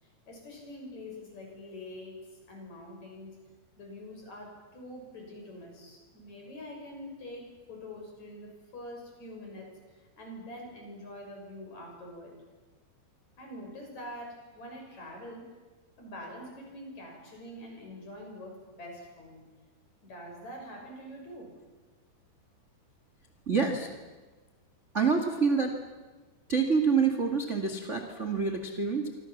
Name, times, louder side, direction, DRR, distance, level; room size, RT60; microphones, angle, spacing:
voice 1, 0.0-3.4 3.8-12.3 13.4-15.5 16.0-19.5 20.0-21.5, left 1 dB, 40° left, 2 dB, 7.6 m, -45 dB
voice 2, 23.5-23.9 24.9-25.7 26.5-29.1, right 5 dB, 35° right, 5 dB, 1.1 m, -27 dB
26.5 x 26.0 x 7.4 m, 1.3 s
omnidirectional pair, 5.0 m